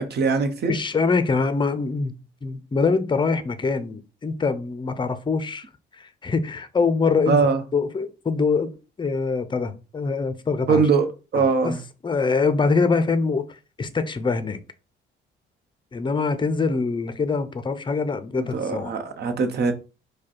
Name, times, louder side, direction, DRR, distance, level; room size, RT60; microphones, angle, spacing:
voice 1, 0.0-0.7 7.3-7.6 10.7-11.1 11.3-11.8 18.4-19.7, right 5 dB, 55° right, 0.9 m, -21 dB
voice 2, 0.6-2.1 2.4-5.7 5.9-7.5 7.7-10.8 11.3-11.7 12.0-13.5 13.8-14.6 15.9-18.9, left 4 dB, 25° left, 0.6 m, -24 dB
5.0 x 2.3 x 4.3 m
cardioid pair, 90°, 20 cm